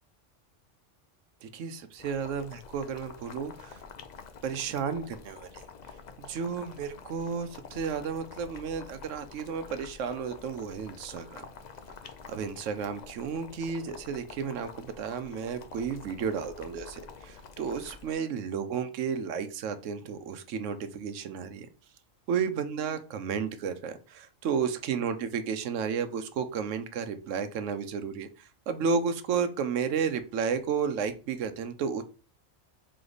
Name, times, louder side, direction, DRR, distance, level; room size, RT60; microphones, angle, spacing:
voice 1, 1.4-3.8 4.4-5.6 6.2-11.5 12.3-21.7 22.3-32.0, right 6 dB, 90° right, 10 dB, 1.0 m, -32 dB
Boiling, 2.0-18.1, left 5 dB, 55° left, 0.5 m, -48 dB
3.8 x 3.3 x 3.9 m, 0.35 s
omnidirectional pair, 1.3 m